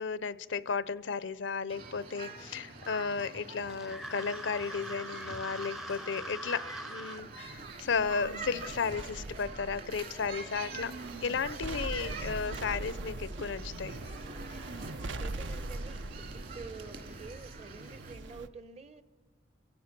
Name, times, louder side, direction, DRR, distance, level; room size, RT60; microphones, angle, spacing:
voice 1, 0.0-10.9 11.2-14.0, left 5 dB, 80° left, 0.6 m, -34 dB
sound 1, 1.7-18.2, right 3 dB, 50° right, 2.4 m, -46 dB
sound 2, 3.7-7.2, right 1 dB, ahead, 0.5 m, -42 dB
sound 3, 7.2-18.5, right 2 dB, 75° right, 0.7 m, -42 dB
voice 2, 14.9-16.2 16.5-19.0, right 4 dB, 35° right, 0.8 m, -48 dB
29.5 x 16.5 x 5.9 m
head